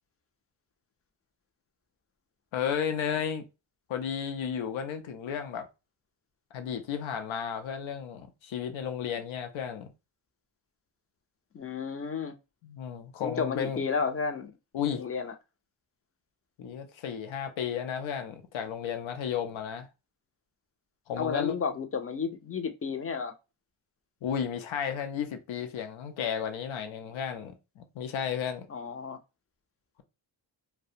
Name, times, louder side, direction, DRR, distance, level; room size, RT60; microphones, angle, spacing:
voice 1, 2.5-3.4 3.9-5.7 6.5-9.9 12.6-13.8 14.7-15.1 16.6-19.9 21.1-21.5 24.2-28.7, left 8 dB, 90° left, 0.6 m, -33 dB
voice 2, 11.5-12.3 13.2-14.5 14.9-15.3 21.2-23.3 28.7-29.2, left 5 dB, 30° left, 0.4 m, -32 dB
2.4 x 2.1 x 2.7 m
wide cardioid pair, 115°, 46 cm